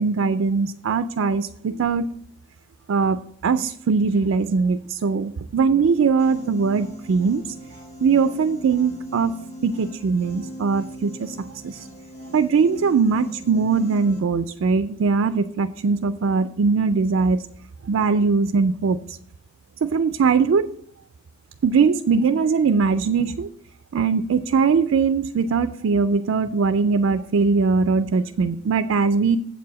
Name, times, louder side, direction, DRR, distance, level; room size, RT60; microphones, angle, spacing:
voice 1, 0.0-2.1 2.9-7.5 8.0-9.3 9.6-11.4 11.6-11.9 12.3-17.4 17.9-19.2 19.8-20.7 21.6-23.5 23.9-29.4, right 5 dB, 85° right, 11 dB, 0.4 m, -21 dB
Piano, 6.2-14.2, equal, 50° left, 2.8 m, -39 dB
7.9 x 4.7 x 6.2 m, 0.66 s
head